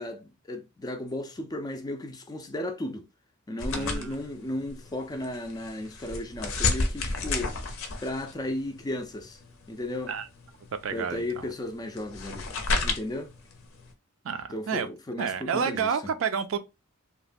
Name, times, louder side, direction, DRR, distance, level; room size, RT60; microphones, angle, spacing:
voice 1, 0.0-3.0 3.5-7.7 8.0-9.4 9.7-10.1 10.9-12.5 12.8-13.3 14.5-15.9, left 1 dB, 20° left, 0.4 m, -34 dB
sound 1, 3.6-13.9, left 3 dB, 70° left, 0.6 m, -33 dB
voice 2, 3.7-4.2 10.1-10.3 10.8-11.5 14.2-14.9 15.2-16.6, right 6 dB, 65° right, 0.4 m, -30 dB
3.0 x 2.1 x 2.4 m
head